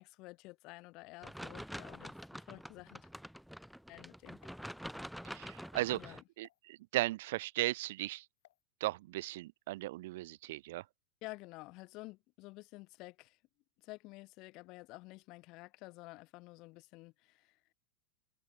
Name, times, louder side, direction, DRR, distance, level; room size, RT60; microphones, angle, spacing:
voice 1, 0.0-3.1 3.9-4.6 5.9-6.2 11.2-13.4 13.8-17.6, left 22 dB, 35° left, 4.7 m, -51 dB
sound 1, 1.2-6.2, equal, ahead, 1.2 m, -47 dB
voice 2, 5.3-6.0 6.4-8.3 8.8-10.8, right 18 dB, 55° right, 0.5 m, -36 dB
sound 2, 6.4-6.6 8.4-8.6, left 15 dB, 65° left, 5.0 m, -67 dB
supercardioid pair, 175°, 0 cm